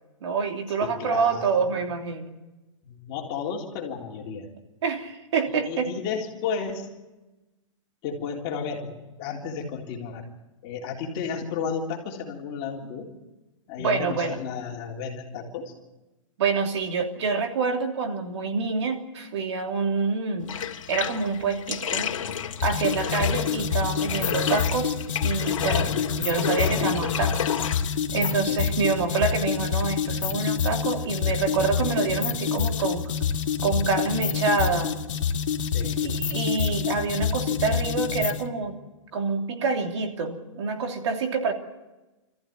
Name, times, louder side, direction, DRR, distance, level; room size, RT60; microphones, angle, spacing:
voice 1, 0.2-2.3 4.8-6.0 13.8-14.4 16.4-20.5 20.9-22.2 22.6-25.0 25.2-25.9 26.2-27.5 28.1-33.0 33.6-34.9 36.0-38.8 39.1-41.5, right 4 dB, 60° right, 3 dB, 3.0 m, -27 dB
voice 2, 0.8-1.8 2.8-4.5 5.6-6.9 8.0-10.2 10.6-13.1 13.7-15.7 28.5-28.6 35.7-36.0, left 6 dB, 30° left, -1 dB, 3.7 m, -33 dB
Bathtub (filling or washing), 20.4-32.1, left 8 dB, 85° left, 2.1 m, -33 dB
sound 1, 22.6-38.5, left 7 dB, 70° left, 2.4 m, -27 dB
26.5 x 15.0 x 9.2 m, 1.1 s
hypercardioid pair, 165°, 16 cm